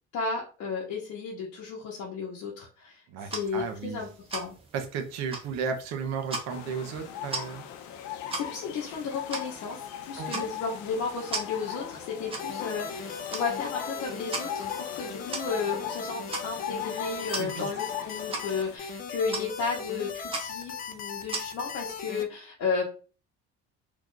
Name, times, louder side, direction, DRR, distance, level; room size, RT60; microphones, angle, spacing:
voice 1, 0.1-4.5 8.3-22.8, left 5 dB, 60° left, -5 dB, 0.9 m, -33 dB
voice 2, 3.1-4.0 4.7-7.7 10.2-10.5 17.3-17.7, right 6 dB, 60° right, 5 dB, 0.8 m, -34 dB
sound 1, 3.2-22.0, right 3 dB, 20° right, 0.6 m, -41 dB
sound 2, 6.5-18.8, left 10 dB, 85° left, 0.6 m, -39 dB
sound 3, 12.4-22.2, left 5 dB, 30° left, 0.4 m, -38 dB
2.9 x 2.4 x 3.7 m, 0.37 s
cardioid pair, 170°, 29 cm